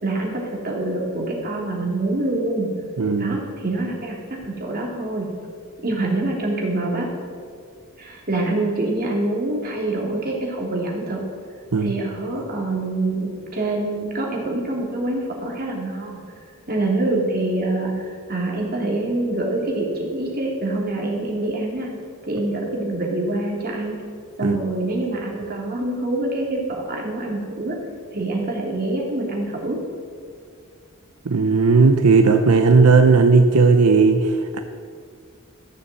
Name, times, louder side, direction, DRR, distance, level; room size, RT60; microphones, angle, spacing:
voice 1, 0.0-2.7 3.2-5.3 5.8-7.1 8.0-11.2 11.8-16.2 16.7-21.9 22.3-24.0 24.4-26.6 26.9-27.8 28.1-29.8, right 2 dB, 45° right, -2 dB, 2.9 m, -25 dB
voice 2, 3.0-3.4 11.7-11.9 24.4-24.6 31.2-34.6, right 4 dB, 85° right, 6 dB, 0.7 m, -15 dB
14.0 x 6.9 x 7.7 m, 2.1 s
head